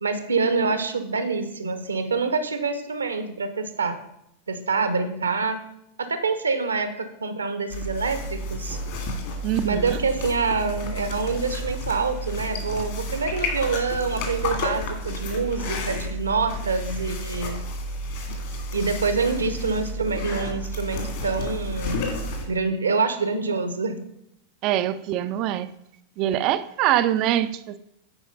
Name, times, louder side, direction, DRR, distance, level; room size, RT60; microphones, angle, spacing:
voice 1, 0.0-4.0 4.5-5.6 6.0-8.8 9.6-17.6 18.7-22.0 22.5-24.0 26.3-26.4, right 4 dB, 75° right, 0.9 m, -26 dB
sound 1, 7.7-22.4, left 1 dB, 50° left, 2.4 m, -31 dB
voice 2, 9.4-10.0 24.6-25.7 26.2-27.8, right 12 dB, 40° right, 0.5 m, -24 dB
8.9 x 5.0 x 5.4 m
figure-of-eight pair, 90°, 0 cm